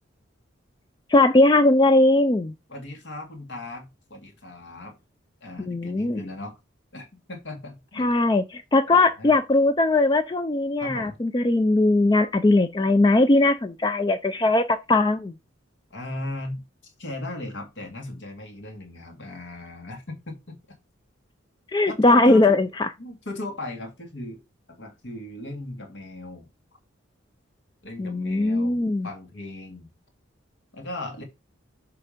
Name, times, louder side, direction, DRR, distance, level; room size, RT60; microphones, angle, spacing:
voice 1, 1.1-2.5 5.6-6.2 8.0-15.3 21.7-22.9 28.0-29.1, left 2 dB, 20° left, 0.3 m, -20 dB
voice 2, 2.7-5.0 5.4-6.6 6.9-8.1 8.9-9.3 10.8-11.2 15.9-20.6 21.9-22.6 23.0-24.4 24.8-26.5 27.8-29.9 30.7-31.2, left 2 dB, 65° left, 2.2 m, -37 dB
6.8 x 3.6 x 5.1 m
head